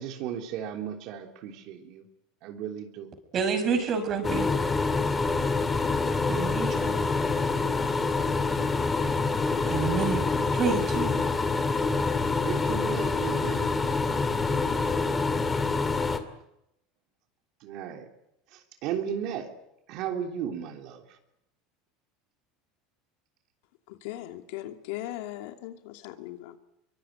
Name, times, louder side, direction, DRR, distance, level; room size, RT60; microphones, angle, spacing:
voice 1, 0.0-2.0 2.4-3.1 12.4-13.7 17.6-18.1 18.5-19.5 19.9-21.0, right 9 dB, 55° right, 4 dB, 3.3 m, -35 dB
voice 2, 3.3-4.5 6.3-7.1 9.7-10.2 10.5-11.1, right 5 dB, 35° right, 9 dB, 6.0 m, -28 dB
sound 1, 4.2-16.2, left 3 dB, 15° left, 2.3 m, -26 dB
voice 3, 23.9-26.6, left 14 dB, 75° left, 6 dB, 2.7 m, -39 dB
24.0 x 23.5 x 9.3 m, 0.83 s
supercardioid pair, 145°, 0 cm